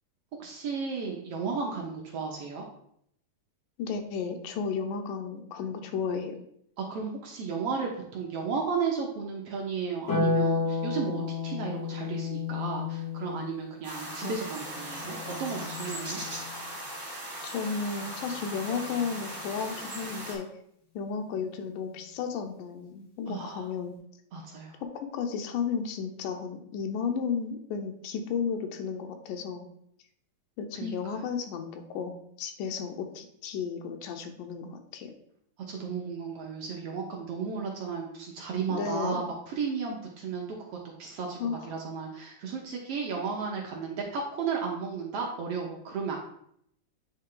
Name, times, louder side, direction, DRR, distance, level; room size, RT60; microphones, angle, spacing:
voice 1, 0.4-2.6 6.8-16.2 23.3-23.7 24.3-24.7 30.8-31.2 35.7-40.4 41.0-46.2, right 5 dB, 70° right, -1 dB, 1.5 m, -34 dB
voice 2, 3.8-6.4 14.2-14.3 17.4-20.5 21.0-23.9 25.0-29.7 30.6-35.1 38.7-39.3 41.4-41.8, left 6 dB, 85° left, 5 dB, 2.3 m, -33 dB
Harp, 10.1-16.6 18.2-19.2, left 4 dB, 55° left, 4.0 m, -33 dB
sound 1, 13.8-20.3, right 1 dB, 25° right, 1.8 m, -39 dB
9.1 x 3.3 x 3.8 m, 0.71 s
omnidirectional pair, 3.6 m